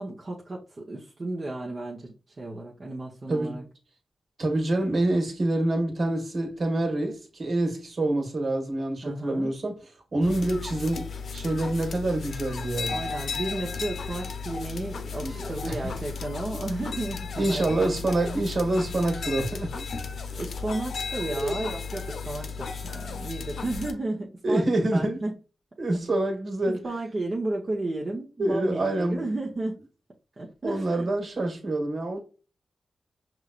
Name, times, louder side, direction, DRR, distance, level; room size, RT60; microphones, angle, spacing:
voice 1, 0.0-3.6 9.0-9.5 12.9-17.7 20.4-24.7 24.9-25.3 26.7-29.8 30.4-31.1, right 2 dB, 40° right, 1.0 m, -33 dB
voice 2, 3.3-3.6 4.4-9.8 10.1-13.0 15.2-15.9 16.5-16.6 17.4-19.9 20.3-20.4 21.4-21.5 24.4-25.2 25.8-26.8 28.4-29.2 30.6-32.2, right 2 dB, 55° right, 1.8 m, -26 dB
sound 1, 10.2-23.9, left 5 dB, 75° left, 0.7 m, -35 dB
5.5 x 3.2 x 2.5 m
cardioid pair, 80°, 0 cm